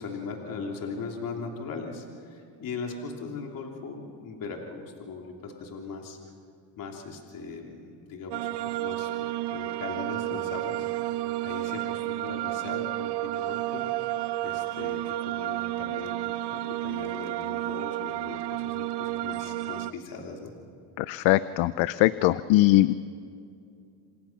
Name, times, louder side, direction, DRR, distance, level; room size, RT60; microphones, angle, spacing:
voice 1, 0.0-6.2 6.8-8.5 8.8-9.1 9.5-13.8 14.4-20.5, left 4 dB, 50° left, 1 dB, 3.0 m, -39 dB
sound 1, 8.3-19.9, right 16 dB, 65° right, 0.9 m, -31 dB
voice 2, 21.0-22.9, left 17 dB, 85° left, 15 dB, 0.7 m, -21 dB
28.0 x 26.0 x 5.9 m, 2.4 s
cardioid pair, 135°, 43 cm